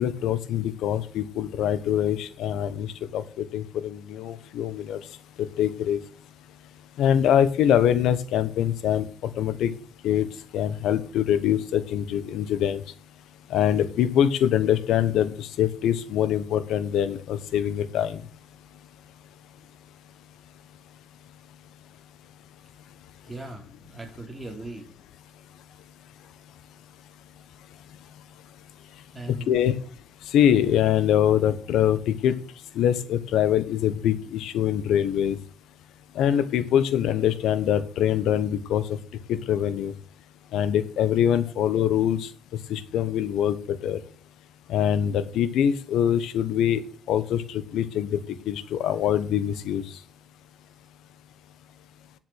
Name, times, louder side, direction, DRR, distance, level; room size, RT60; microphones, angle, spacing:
voice 1, 0.0-2.9 3.1-5.0 5.4-6.0 7.0-9.1 9.4-9.7 10.0-10.3 10.5-12.8 13.5-18.2 29.3-29.7 30.3-32.4 32.7-35.4 36.1-38.8 39.3-39.9 40.5-42.3 42.7-44.0 44.7-46.8 47.1-48.2 48.5-49.8, left 10 dB, 85° left, 14 dB, 1.2 m, -24 dB
voice 2, 23.2-24.9 29.1-29.8, right 2 dB, 10° right, 2 dB, 3.7 m, -39 dB
10.0 x 7.6 x 6.6 m, 0.41 s
cardioid pair, 90°, 0 cm